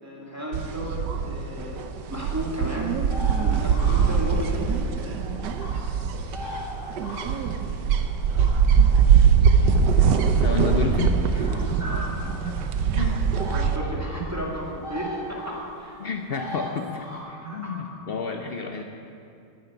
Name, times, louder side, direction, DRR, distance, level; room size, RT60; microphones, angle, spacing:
voice 1, 0.0-1.8 2.1-5.2 10.9-12.6 13.5-16.0 17.3-18.1, right 1 dB, 10° right, -3 dB, 2.2 m, -34 dB
sound 1, 0.5-13.8, right 6 dB, 70° right, 1.4 m, -22 dB
sound 2, 3.1-5.8 6.2-7.5 7.9-8.8 9.6-10.2 11.4-11.7 12.2-12.4 13.4-13.7 14.0-14.2 14.6-15.6 16.3-17.2, left 1 dB, 30° left, 3.6 m, -38 dB
voice 2, 9.6-10.1 10.4-11.5 12.9-13.2 16.0-17.0 17.5-18.8, left 5 dB, 75° left, 4 dB, 0.5 m, -30 dB
10.5 x 9.2 x 9.7 m, 2.5 s
omnidirectional pair, 2.0 m